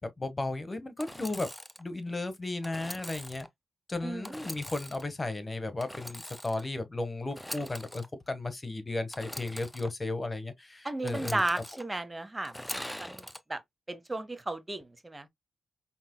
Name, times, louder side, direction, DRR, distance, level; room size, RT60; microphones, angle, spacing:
voice 1, 0.0-1.5 1.8-3.5 3.9-11.4, left 2 dB, 30° left, 1.3 m, -35 dB
Engine / Sawing, 1.0-1.8 2.6-3.5 4.2-5.1 5.8-6.7 7.3-8.1 9.1-9.9 11.1-11.8 12.4-13.4, equal, 5° left, 0.8 m, -42 dB
voice 2, 10.8-13.2 13.5-13.6 13.9-15.3, right 2 dB, 25° right, 0.9 m, -34 dB
5.3 x 3.0 x 2.2 m
supercardioid pair, 45°, 0 cm